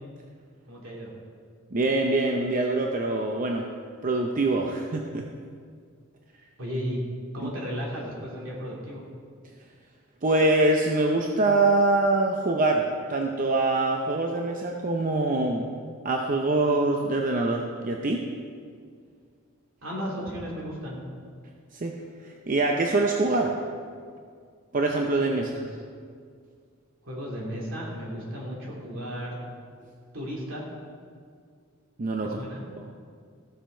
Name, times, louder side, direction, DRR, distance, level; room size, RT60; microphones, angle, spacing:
voice 1, 0.7-1.1 6.6-7.0 7.3-9.0 19.8-21.0 25.3-25.6 27.0-29.4 30.1-30.6 32.2-32.6, equal, 75° right, -3 dB, 2.8 m, -34 dB
voice 2, 1.7-3.6 4.0-5.2 7.4-7.5 10.2-15.7 16.0-18.3 21.7-21.9 22.2-23.6 24.7-25.6 32.0-32.4 32.8-33.0, right 2 dB, 40° right, 1 dB, 0.7 m, -24 dB
15.0 x 6.8 x 4.5 m, 2.1 s
head